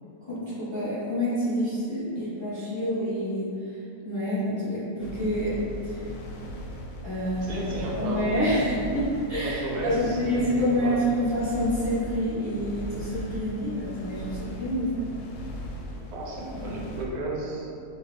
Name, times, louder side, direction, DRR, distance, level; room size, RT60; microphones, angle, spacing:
voice 1, 0.3-3.5 4.0-6.0 7.0-7.7 8.0-15.0, equal, 20° left, -12 dB, 1.1 m, -27 dB
sound 1, 5.0-17.1, equal, 80° left, 1.1 m, -38 dB
voice 2, 7.5-8.8 9.4-11.0 16.1-17.7, right 1 dB, 75° right, -3 dB, 1.2 m, -33 dB
3.6 x 2.8 x 3.6 m, 2.6 s
omnidirectional pair, 1.6 m